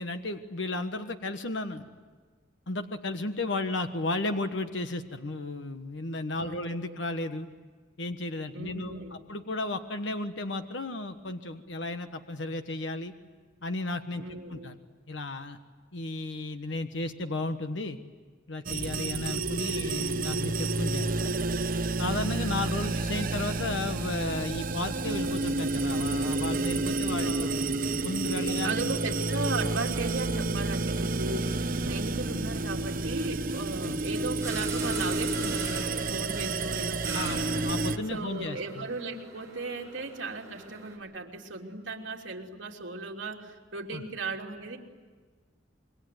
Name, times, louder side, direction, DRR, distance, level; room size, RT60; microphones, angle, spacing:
voice 1, 0.0-1.9 2.7-7.5 8.0-13.1 13.6-14.8 15.1-15.6 15.9-18.0 18.5-21.3 22.0-27.5 28.0-28.9 31.8-31.9 33.9-34.0 37.1-37.4 37.6-38.9 43.9-44.0, left 2 dB, 65° left, 7 dB, 1.3 m, -34 dB
voice 2, 6.4-7.0 8.5-9.2 14.2-14.8 22.9-23.0 27.2-27.7 28.6-37.5 38.1-44.8, right 3 dB, 70° right, 0 dB, 3.3 m, -37 dB
sound 1, 18.7-38.0, right 3 dB, 45° right, 1.0 m, -30 dB
sound 2, 34.4-41.0, right 4 dB, 15° right, 6.3 m, -42 dB
27.0 x 23.5 x 9.5 m, 1.5 s
head